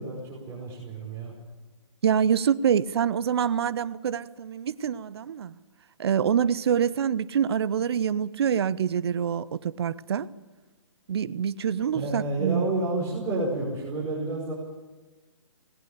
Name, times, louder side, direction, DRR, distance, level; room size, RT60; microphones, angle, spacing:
voice 1, 0.0-1.3 11.9-14.5, right 2 dB, 15° right, -8 dB, 5.5 m, -30 dB
voice 2, 2.0-5.6 6.0-10.3 11.1-12.7, right 8 dB, 55° right, 17 dB, 0.8 m, -26 dB
19.0 x 18.5 x 8.3 m, 1.2 s
figure-of-eight pair, 140°, 16 cm